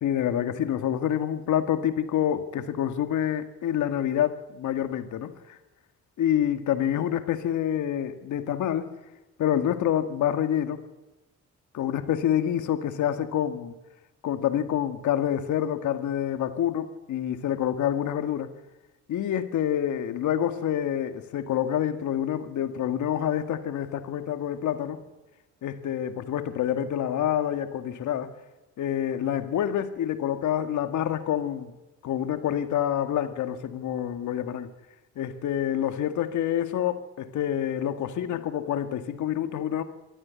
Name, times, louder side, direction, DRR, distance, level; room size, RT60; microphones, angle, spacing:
voice 1, 0.0-5.6 6.2-8.9 9.4-10.8 11.7-13.7 14.2-18.5 19.1-25.0 25.6-28.3 28.8-31.7 32.0-34.7 35.2-39.8, left 10 dB, 75° left, 9 dB, 1.9 m, -27 dB
23.0 x 14.5 x 9.6 m, 1.1 s
cardioid pair, 90°, 30 cm